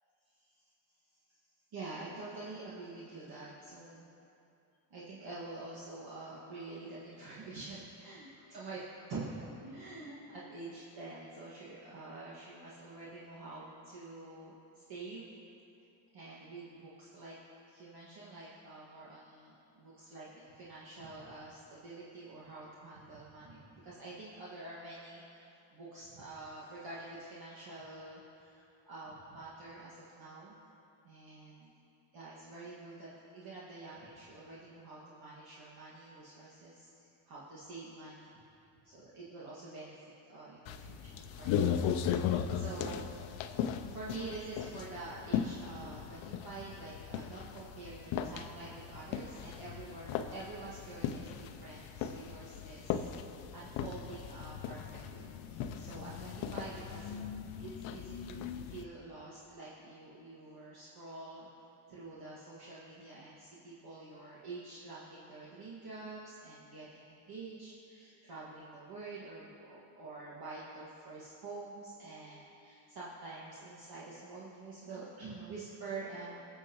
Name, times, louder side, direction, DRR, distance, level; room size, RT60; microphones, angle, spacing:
voice 1, 0.3-0.6 1.3-1.4 1.7-4.1 4.9-8.8 9.1-15.3 16.1-17.4 17.7-30.6 31.0-31.7 32.1-38.3 38.8-53.1 53.5-57.2 57.6-61.5 61.9-76.4, right 3 dB, 50° right, -8 dB, 2.0 m, -47 dB
sound 1, 40.7-58.8, left 8 dB, 70° left, 0.7 m, -38 dB
20.5 x 7.6 x 3.0 m, 2.7 s
cardioid pair, 110°, 47 cm